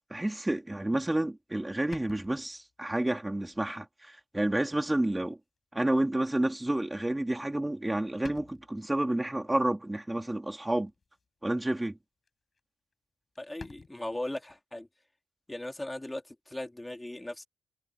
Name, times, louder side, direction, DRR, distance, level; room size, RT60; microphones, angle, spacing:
voice 1, 0.1-5.4 5.7-10.9 11.4-12.0, right 1 dB, 15° right, 3.2 m, -30 dB
sound 1, 1.9-2.8 3.5-3.7 4.2-4.3 5.6-5.7 7.3-7.7 7.9-8.0 8.2-8.9 10.8-11.3 11.6-11.9 12.2-12.3 12.5-12.6 12.9-13.0 13.3-13.9, left 4 dB, 45° left, 6.7 m, -50 dB
voice 2, 13.4-14.9 15.5-17.5, left 1 dB, 15° left, 3.5 m, -38 dB
cardioid pair, 60°, 0 cm